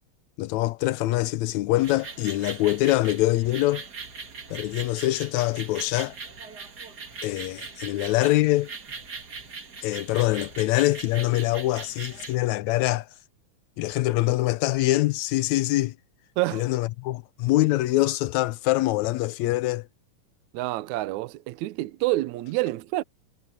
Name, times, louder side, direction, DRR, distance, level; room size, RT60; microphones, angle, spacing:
voice 1, 0.4-3.8 4.5-6.2 7.2-8.7 9.8-13.1 13.8-15.9 16.5-19.9, left 17 dB, 80° left, 1.7 m, -24 dB
sound 1, 1.8-12.4, right 4 dB, 35° right, 2.2 m, -40 dB
voice 2, 16.4-16.7 20.5-23.0, right 18 dB, 75° right, 1.8 m, -28 dB
omnidirectional pair, 3.8 m